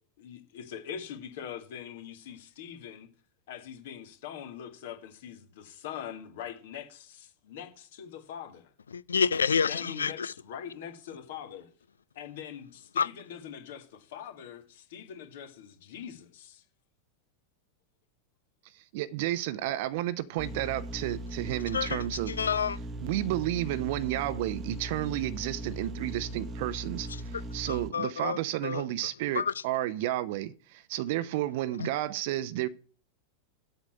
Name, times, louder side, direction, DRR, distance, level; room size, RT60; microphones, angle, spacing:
voice 1, 0.2-3.1 3.5-8.7 9.7-11.7 12.2-16.6, left 9 dB, 55° left, 2.0 m, -43 dB
voice 2, 8.9-10.3 13.0-13.1 21.7-22.0 22.3-22.8 27.7-28.8 29.3-29.5 31.8-31.9, left 6 dB, 70° left, 0.4 m, -28 dB
voice 3, 18.9-22.3 23.0-32.7, right 14 dB, 50° right, 0.7 m, -32 dB
sound 1, 20.4-27.9, right 1 dB, 25° right, 1.0 m, -39 dB
8.2 x 6.2 x 6.7 m
figure-of-eight pair, 90°, 0 cm